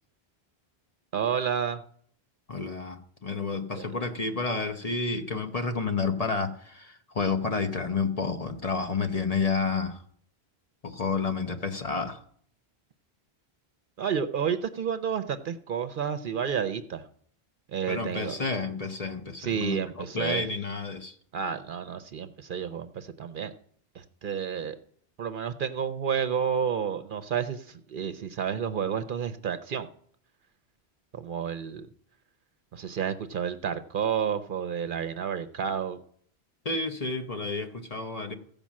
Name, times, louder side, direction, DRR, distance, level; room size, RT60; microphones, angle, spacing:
voice 1, 1.1-1.8 3.7-3.8 14.0-17.0 17.7-18.3 19.4-20.4 21.3-23.5 24.0-24.8 25.2-29.9 31.1-31.9 32.7-36.0, right 7 dB, 60° right, 10 dB, 0.7 m, -30 dB
voice 2, 2.5-10.0 10.8-12.2 17.9-21.2 36.6-38.3, left 4 dB, 40° left, 6 dB, 0.9 m, -30 dB
15.0 x 5.3 x 7.3 m, 0.63 s
omnidirectional pair, 1.1 m